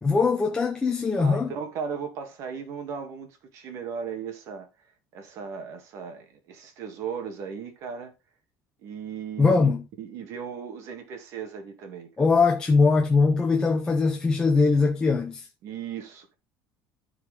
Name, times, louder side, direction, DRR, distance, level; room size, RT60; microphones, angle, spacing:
voice 1, 0.0-1.5 9.4-9.8 12.2-15.4, left 4 dB, 10° left, 0.9 m, -21 dB
voice 2, 1.2-4.7 5.1-8.1 8.8-9.7 10.0-12.3 15.6-16.3, right 6 dB, 45° right, 2.1 m, -36 dB
13.5 x 4.8 x 3.5 m
cardioid pair, 175°, 7 cm